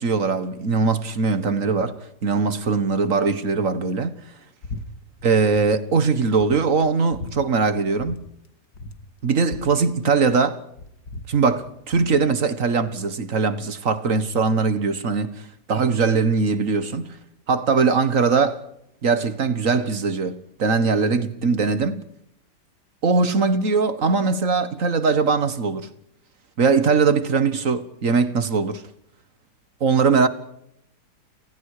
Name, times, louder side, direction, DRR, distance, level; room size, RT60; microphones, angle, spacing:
voice 1, 0.0-1.9 2.2-4.2 5.2-8.3 9.2-10.6 11.3-15.3 15.7-17.2 17.5-18.6 19.0-22.0 23.0-25.9 26.6-28.8 29.8-30.3, right 4 dB, 50° right, 1.8 m, -21 dB
sound 1, 4.6-4.9 5.1-5.7 6.0-6.1 6.4-7.4 8.0-8.2 8.4-8.5 8.7-10.4 10.7-12.2, left 3 dB, 65° left, 2.5 m, -37 dB
30.0 x 28.5 x 4.9 m
omnidirectional pair, 1.9 m